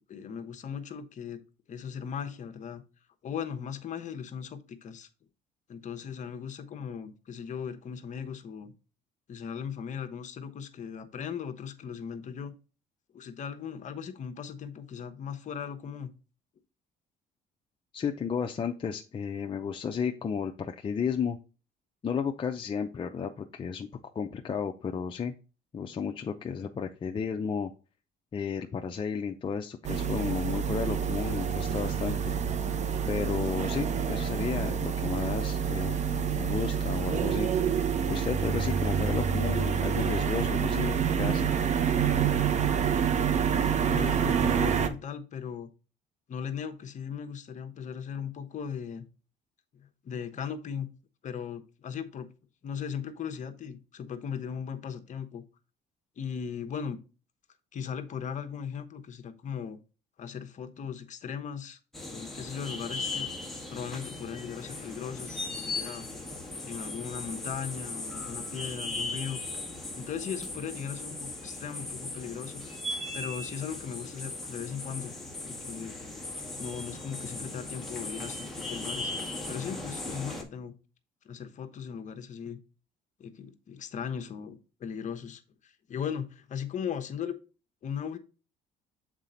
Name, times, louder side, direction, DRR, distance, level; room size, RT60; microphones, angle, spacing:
voice 1, 0.0-1.4 1.7-2.8 3.2-5.1 5.7-8.7 9.3-12.5 13.1-16.1 43.9-45.7 46.3-49.1 49.7-50.9 51.2-52.3 52.6-55.4 56.2-57.0 57.7-59.8 60.2-61.8 62.1-63.3 63.7-66.1 66.6-69.4 69.9-72.6 73.1-75.1 75.4-76.0 76.6-80.7 81.2-82.6 83.2-87.4 87.8-88.2, left 7 dB, 45° left, 7 dB, 1.0 m, -38 dB
voice 2, 17.9-21.4 22.0-23.9 24.1-25.3 25.7-27.7 28.3-32.3 33.1-37.5 38.1-41.5, left 6 dB, 30° left, 3 dB, 0.6 m, -33 dB
sound 1, 29.8-44.9, right 7 dB, 45° right, 0.8 m, -27 dB
sound 2, 61.9-80.4, left 2 dB, ahead, 1.6 m, -38 dB
7.4 x 4.1 x 3.9 m, 0.33 s
cardioid pair, 110°, 17 cm